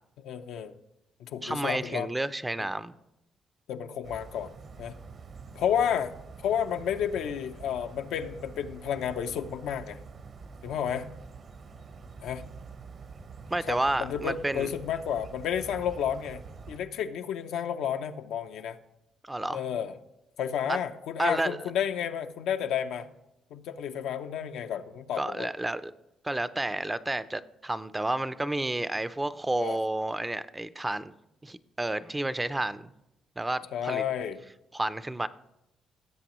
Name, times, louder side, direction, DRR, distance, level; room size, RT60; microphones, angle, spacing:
voice 1, 0.2-0.7 1.2-2.1 3.7-4.5 4.8-4.9 5.5-6.1 6.4-10.0 10.6-11.1 12.2-12.5 13.7-16.4 16.7-18.8 19.5-19.9 20.4-23.1 23.5-25.5 29.6-29.8 33.7-34.4, left 8 dB, 85° left, 7 dB, 0.6 m, -31 dB
voice 2, 1.4-2.9 13.5-14.7 19.2-19.6 20.7-20.8 21.2-21.7 25.2-25.9 26.2-31.1 31.4-32.9 33.4-34.0 34.7-35.3, right 1 dB, 15° right, 14 dB, 0.4 m, -30 dB
sound 1, 4.0-16.8, right 4 dB, 55° right, 0.9 m, -46 dB
17.5 x 7.6 x 3.0 m, 0.88 s
cardioid pair, 90°, 0 cm